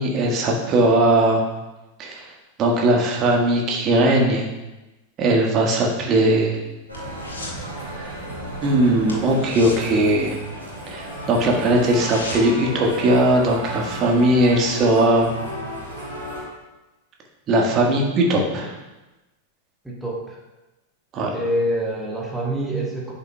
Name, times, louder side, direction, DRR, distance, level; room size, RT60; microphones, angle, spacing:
voice 1, 0.0-1.4 2.0-2.3 2.6-4.5 5.2-6.6 8.0-8.2 8.6-10.4 10.9-15.3 17.5-18.7 21.1-21.3, right 1 dB, 30° right, 0 dB, 1.5 m, -19 dB
sound 1, 6.1-7.7 7.9-8.2 8.5-8.6 9.0-10.9 11.2-11.3 11.6-12.7 13.0-13.1, left 2 dB, 70° left, 1.6 m, -37 dB
sound 2, 6.9-16.4, equal, 90° right, 2.4 m, -33 dB
voice 2, 19.8-20.4 21.3-23.1, right 1 dB, 5° right, -4 dB, 1.4 m, -26 dB
10.5 x 5.6 x 2.3 m, 1.1 s
figure-of-eight pair, 90°, 0 cm